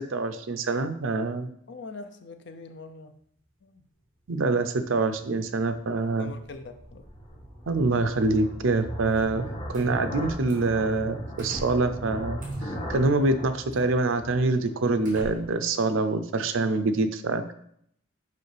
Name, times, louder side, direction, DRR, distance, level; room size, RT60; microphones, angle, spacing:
voice 1, 0.0-1.5 4.3-6.3 7.7-9.5 9.7-12.4 12.9-17.5, right 3 dB, 75° right, 0.6 m, -25 dB
voice 2, 1.7-3.1 3.6-3.8 6.2-7.1, left 3 dB, 60° left, 0.6 m, -42 dB
sound 1, 5.5-15.0, equal, 25° left, 1.5 m, -38 dB
sound 2, 9.1-9.9 10.4-10.8 11.4-11.9 12.4-12.8 13.7-13.8 14.4-14.5 15.0-15.7, equal, 40° right, 2.3 m, -43 dB
6.7 x 5.2 x 3.3 m
head